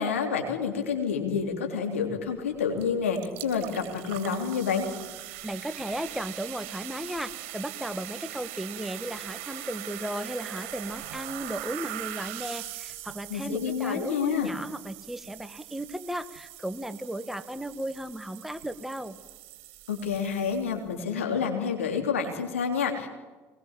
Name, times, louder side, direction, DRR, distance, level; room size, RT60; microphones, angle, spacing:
voice 1, 0.0-4.9 13.3-14.5 19.9-23.1, left 6 dB, 90° left, 3 dB, 3.5 m, -28 dB
sound 1, 2.8-2.9 3.1-20.9, right 14 dB, 70° right, 2.8 m, -41 dB
voice 2, 5.4-19.2, right 1 dB, 5° right, 11 dB, 1.7 m, -35 dB
23.0 x 20.5 x 7.5 m, 1.3 s
hypercardioid pair, 65°, 7 cm